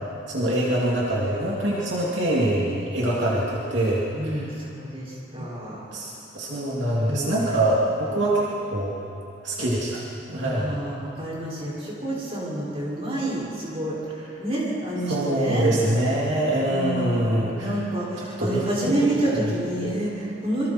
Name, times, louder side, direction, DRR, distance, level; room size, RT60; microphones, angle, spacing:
voice 1, 0.3-4.4 5.4-5.5 5.9-8.9 9.4-10.0 10.3-10.8 15.1-17.7 18.4-19.4, right 1 dB, 65° right, -6 dB, 3.0 m, -24 dB
voice 2, 4.1-5.8 7.0-7.3 10.4-15.7 16.7-20.7, right 1 dB, 30° right, -6 dB, 6.3 m, -28 dB
27.5 x 24.5 x 4.6 m, 2.8 s
head